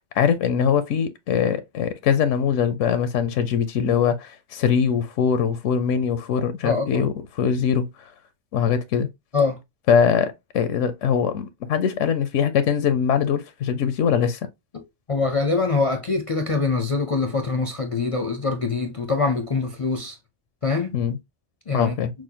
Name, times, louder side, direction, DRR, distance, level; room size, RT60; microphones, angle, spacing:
voice 1, 0.2-7.9 8.5-9.1 9.9-14.4 20.9-21.2 21.7-22.1, left 7 dB, 90° left, 1.0 m, -22 dB
voice 2, 6.6-7.1 9.3-9.6 14.7-14.8 15.1-20.2 20.6-21.0 21.7-21.9, left 4 dB, 45° left, 0.4 m, -24 dB
6.1 x 2.1 x 2.7 m
omnidirectional pair, 1.2 m